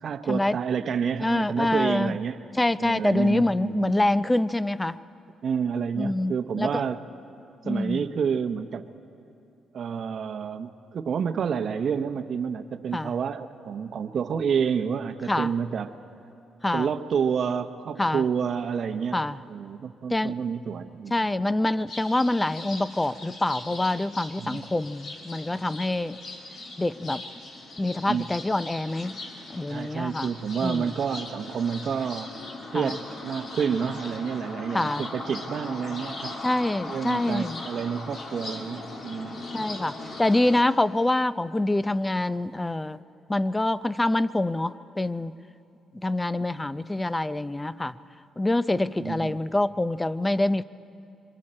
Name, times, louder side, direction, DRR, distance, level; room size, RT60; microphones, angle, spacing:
voice 1, 0.0-2.4 2.8-4.0 5.4-7.0 7.6-8.8 9.7-15.9 16.7-21.3 24.4-24.7 28.1-28.2 29.7-32.3 32.7-36.3 36.9-39.4 49.0-49.4, right 7 dB, 55° right, 9 dB, 0.9 m, -29 dB
voice 2, 1.2-2.2 2.6-5.0 6.0-6.8 7.6-8.1 12.9-13.1 15.3-15.5 16.6-16.9 18.0-18.3 19.1-19.4 20.1-20.3 21.1-26.2 26.8-27.2 27.8-29.2 29.5-30.3 30.6-30.9 32.7-32.9 34.7-35.1 36.4-37.6 39.5-43.0 43.3-45.3 45.9-48.0 48.4-50.6, left 2 dB, 15° left, 16 dB, 0.5 m, -26 dB
sound 1, 21.9-40.6, left 2 dB, 60° left, 2.7 m, -39 dB
26.5 x 24.0 x 4.3 m, 2.7 s
cardioid pair, 90°, 0 cm